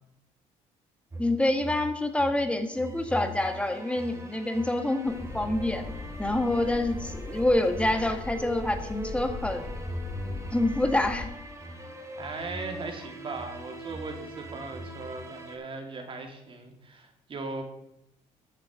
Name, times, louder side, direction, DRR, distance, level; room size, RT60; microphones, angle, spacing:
sound 1, 1.1-15.5, equal, 20° right, 2.8 m, -41 dB
voice 1, 1.2-5.9 6.2-9.7 10.5-11.3, left 1 dB, 10° left, 6 dB, 1.5 m, -27 dB
sound 2, 5.0-11.2, left 3 dB, 50° left, 4.9 m, -39 dB
voice 2, 12.2-17.6, right 3 dB, 40° right, 3 dB, 2.4 m, -38 dB
13.5 x 8.3 x 4.9 m, 0.82 s
cardioid pair, 100°, 13 cm